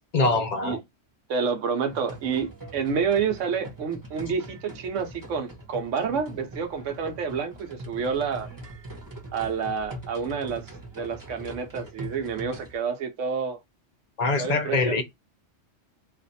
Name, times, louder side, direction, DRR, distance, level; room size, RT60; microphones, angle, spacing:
voice 1, 0.1-0.8 14.2-15.0, left 3 dB, 45° left, 0.6 m, -23 dB
voice 2, 1.3-8.5 9.3-10.7 10.9-13.6 14.4-15.0, right 6 dB, 80° right, 1.1 m, -29 dB
sound 1, 1.9-12.8, right 1 dB, 20° right, 0.9 m, -42 dB
2.5 x 2.5 x 4.0 m
omnidirectional pair, 1.3 m